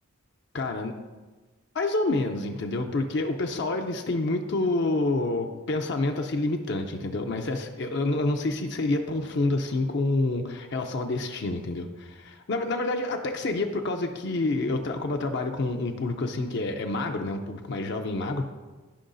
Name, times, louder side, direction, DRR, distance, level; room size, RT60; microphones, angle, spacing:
voice 1, 0.5-0.9 1.7-18.5, left 2 dB, 55° left, 4 dB, 0.5 m, -28 dB
13.5 x 5.5 x 2.6 m, 1.3 s
head